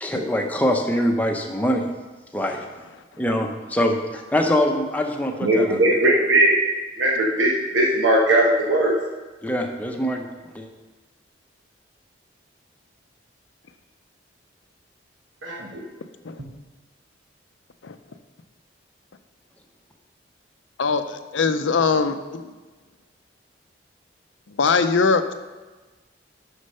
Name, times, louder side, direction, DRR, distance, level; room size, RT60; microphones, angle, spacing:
voice 1, 0.0-1.9 2.3-2.6 3.2-5.8 9.4-10.3 10.5-10.7, equal, 10° left, 2 dB, 0.7 m, -23 dB
voice 2, 5.4-6.5 7.0-8.9 15.4-15.8, right 1 dB, 75° right, -2 dB, 1.2 m, -19 dB
voice 3, 20.8-22.5 24.6-25.3, left 4 dB, 75° left, 9 dB, 0.5 m, -21 dB
6.6 x 6.5 x 5.5 m, 1.3 s
head